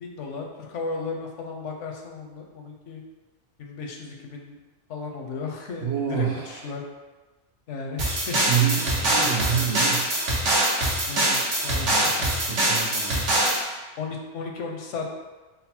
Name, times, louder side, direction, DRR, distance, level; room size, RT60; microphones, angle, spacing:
voice 1, 0.0-3.0 3.6-4.6 4.9-6.8 7.7-8.5 11.1-12.4 14.0-15.1, left 4 dB, 85° left, 1 dB, 1.0 m, -35 dB
voice 2, 5.8-6.7 8.5-10.1 11.8-13.4, right 8 dB, 65° right, -2 dB, 0.9 m, -28 dB
sound 1, 8.0-13.6, right 1 dB, 85° right, 1.3 m, -23 dB
3.9 x 2.1 x 4.2 m, 1.2 s
omnidirectional pair, 1.2 m